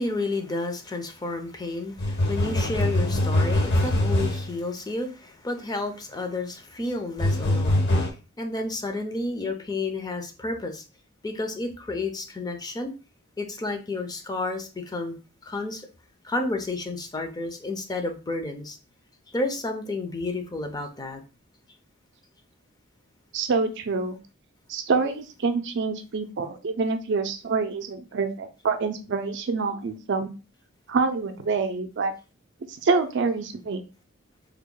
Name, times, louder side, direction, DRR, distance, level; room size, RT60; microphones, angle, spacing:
voice 1, 0.0-8.1 8.4-10.8 11.2-12.9 13.4-15.2 15.4-15.9 16.2-18.8 19.3-21.2, left 2 dB, 20° left, 5 dB, 0.5 m, -31 dB
sound 1, 2.0-4.5 7.2-8.1, left 1 dB, 55° left, 0.9 m, -23 dB
voice 2, 23.3-24.2 24.7-30.3 30.9-32.1 32.7-33.8, right 4 dB, 60° right, 7 dB, 0.5 m, -26 dB
3.4 x 2.1 x 3.7 m, 0.32 s
head